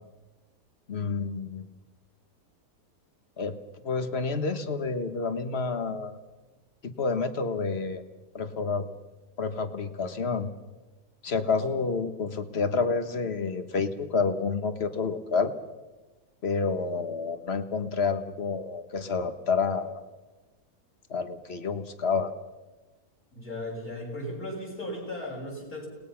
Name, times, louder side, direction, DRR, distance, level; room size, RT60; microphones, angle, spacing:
voice 1, 0.9-1.7 3.4-3.5 3.8-6.2 6.8-8.0 8.3-8.9 9.4-10.5 11.2-15.5 16.4-20.0 21.1-22.3, left 4 dB, 40° left, 10 dB, 1.5 m, -29 dB
voice 2, 23.4-25.9, left 1 dB, 55° left, -2 dB, 7.6 m, -36 dB
30.0 x 19.5 x 5.8 m, 1.2 s
omnidirectional pair, 1.8 m